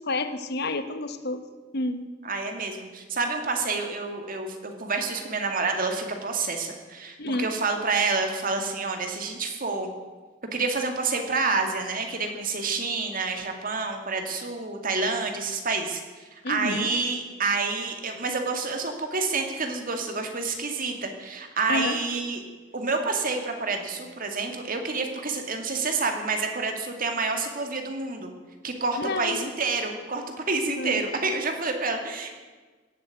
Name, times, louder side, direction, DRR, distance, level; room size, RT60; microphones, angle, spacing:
voice 1, 0.0-1.4 1.7-2.1 7.2-7.5 16.4-16.9 21.7-22.0 29.0-29.5 30.7-31.0, left 2 dB, 60° left, 9 dB, 1.1 m, -29 dB
voice 2, 2.2-9.9 10.5-16.0 16.3-22.4 22.7-28.3 28.6-32.4, right 4 dB, 50° right, 4 dB, 2.2 m, -28 dB
17.0 x 8.3 x 9.3 m, 1.3 s
head